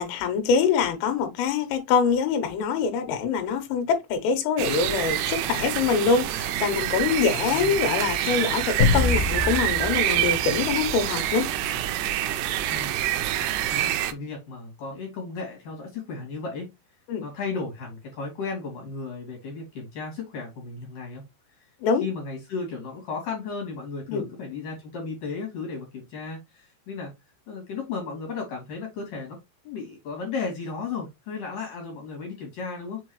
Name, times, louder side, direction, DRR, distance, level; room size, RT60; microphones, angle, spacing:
voice 1, 0.0-11.5 17.1-17.2 21.8-22.0 24.1-24.2, left 6 dB, 85° left, 3.9 m, -24 dB
sound 1, 4.6-14.1, right 12 dB, 90° right, 2.3 m, -27 dB
voice 2, 7.5-7.9 12.7-16.7 17.2-21.2 22.0-27.1 27.5-29.4 29.6-33.0, left 4 dB, 45° left, 3.7 m, -35 dB
sound 2, 8.8-11.3, left 4 dB, 65° left, 1.7 m, -26 dB
7.2 x 4.6 x 3.1 m
omnidirectional pair, 5.7 m